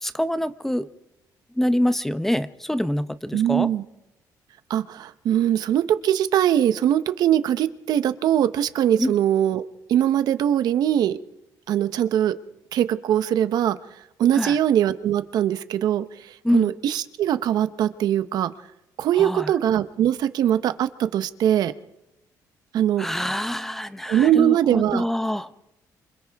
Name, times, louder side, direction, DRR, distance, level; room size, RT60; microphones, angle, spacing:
voice 1, 0.0-0.9 1.6-3.7 9.0-9.1 14.3-14.6 16.4-16.7 19.2-19.5 23.0-25.5, equal, 5° left, 12 dB, 0.7 m, -25 dB
voice 2, 3.3-3.8 4.7-9.6 9.9-11.2 11.7-12.3 12.7-13.8 14.2-18.5 19.0-21.7 22.7-23.1 24.1-25.0, right 11 dB, 75° right, 12 dB, 0.9 m, -21 dB
28.5 x 26.0 x 3.5 m, 0.89 s
cardioid pair, 125°, 7 cm